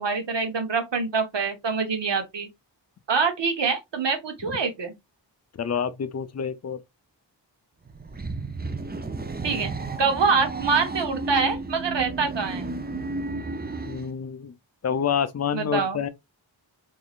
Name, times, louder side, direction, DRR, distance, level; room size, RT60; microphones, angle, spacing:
voice 1, 0.0-2.5 3.1-4.9 9.4-9.7 10.0-12.7 15.5-16.0, right 5 dB, 70° right, 1.0 m, -25 dB
voice 2, 5.6-6.8 13.8-14.5 14.8-16.1, left 7 dB, 35° left, 0.5 m, -28 dB
sound 1, 7.9-14.1, right 3 dB, 20° right, 0.5 m, -32 dB
3.7 x 3.1 x 2.4 m
wide cardioid pair, 50°, 45 cm